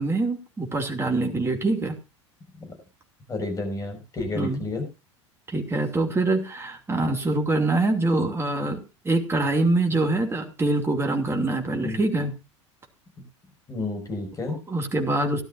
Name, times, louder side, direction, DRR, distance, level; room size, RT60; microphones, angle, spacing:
voice 1, 0.0-1.9 4.3-4.6 5.5-12.3 14.5-15.4, right 2 dB, 15° right, 4 dB, 2.7 m, -24 dB
voice 2, 3.3-4.8 11.8-12.0 13.7-14.6, left 2 dB, 20° left, 3 dB, 6.0 m, -31 dB
18.0 x 12.0 x 2.6 m, 0.29 s
figure-of-eight pair, 80°, 16 cm